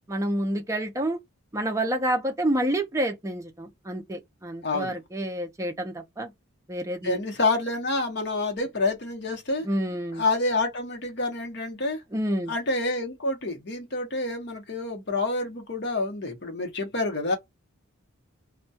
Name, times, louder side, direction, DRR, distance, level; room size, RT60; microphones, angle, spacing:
voice 1, 0.1-1.2 1.5-6.3 6.7-7.2 9.6-10.2 12.1-12.5, right 1 dB, 15° right, 0.5 m, -28 dB
voice 2, 4.6-4.9 7.0-9.7 10.2-12.0 12.5-17.4, left 2 dB, 50° left, 0.8 m, -28 dB
2.2 x 2.1 x 2.6 m
head